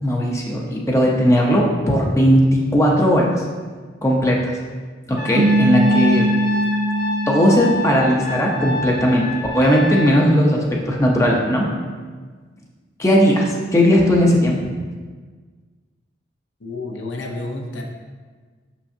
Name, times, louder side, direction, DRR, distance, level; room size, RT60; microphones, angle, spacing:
voice 1, 0.0-3.3 4.0-4.6 5.1-6.3 7.3-9.3 9.5-11.7 13.0-14.6, equal, 15° left, -2 dB, 0.6 m, -17 dB
Trumpet, 5.2-10.2, left 1 dB, 40° left, 1.0 m, -28 dB
sound 1, 5.3-8.7, right 1 dB, 75° right, 0.3 m, -21 dB
voice 2, 16.6-17.8, left 2 dB, 80° left, 1 dB, 0.8 m, -30 dB
6.0 x 5.7 x 2.7 m, 1.5 s
head